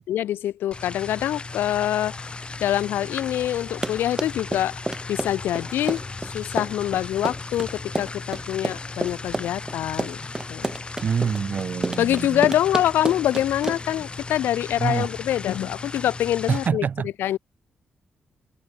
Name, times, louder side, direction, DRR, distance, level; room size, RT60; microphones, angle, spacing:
voice 1, 0.0-2.1 2.6-4.7 5.1-10.2 10.5-10.7 12.0-16.9 17.2-17.4, left 12 dB, 85° left, 0.5 m, -25 dB
sound 1, 0.7-16.7, left 3 dB, 30° left, 5.6 m, -36 dB
Run, 3.6-14.0, right 2 dB, 15° right, 0.7 m, -30 dB
voice 2, 11.0-12.5 14.8-15.1 16.5-17.1, right 6 dB, 55° right, 1.3 m, -26 dB
cardioid pair, 70°, 4 cm